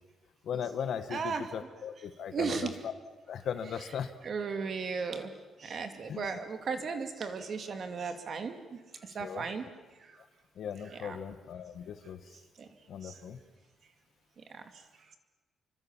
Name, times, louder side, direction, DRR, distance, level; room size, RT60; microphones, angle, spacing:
voice 1, 0.4-2.7 3.3-4.1 6.1-6.3 9.2-9.5 10.6-12.2 12.9-13.4, left 8 dB, 55° left, 10 dB, 1.6 m, -38 dB
voice 2, 1.1-1.5 2.3-2.7 4.2-5.3 5.6-8.8 9.1-9.6 11.0-11.2, right 5 dB, 40° right, 7 dB, 2.4 m, -35 dB
28.5 x 24.5 x 7.4 m, 1.2 s
cardioid pair, 170°, 0 cm